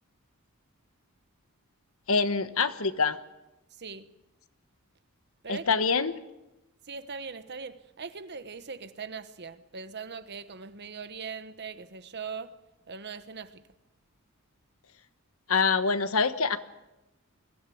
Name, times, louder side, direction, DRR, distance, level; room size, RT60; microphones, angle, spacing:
voice 1, 2.1-3.2 5.5-6.2 15.5-16.6, left 5 dB, 70° left, 1.3 m, -25 dB
voice 2, 3.7-4.1 5.4-5.8 6.8-12.6 12.9-13.7, right 5 dB, 50° right, 1.2 m, -40 dB
23.0 x 16.5 x 9.4 m
head